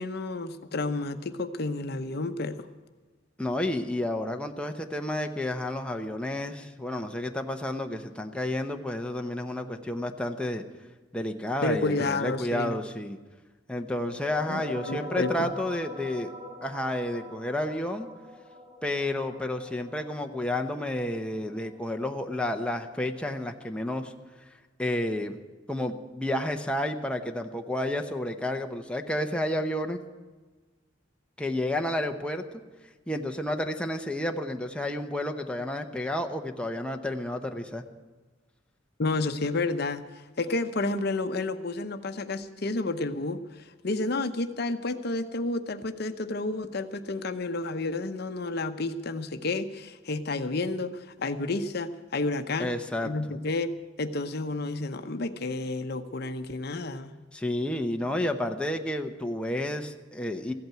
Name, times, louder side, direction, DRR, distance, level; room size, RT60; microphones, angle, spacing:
voice 1, 0.0-2.7 11.6-12.8 14.5-15.5 39.0-40.1 40.4-52.8 53.0-53.7 54.0-57.1, left 2 dB, 60° left, 9 dB, 0.8 m, -30 dB
voice 2, 3.4-10.6 11.1-13.2 13.7-16.3 16.6-18.1 18.8-24.1 24.8-25.4 25.7-30.0 31.4-32.4 33.1-37.8 52.6-53.1 57.3-60.5, left 1 dB, 5° left, 3 dB, 0.8 m, -31 dB
sound 1, 14.2-23.3, left 1 dB, 25° right, 3.8 m, -44 dB
15.0 x 8.6 x 9.2 m, 1.3 s
head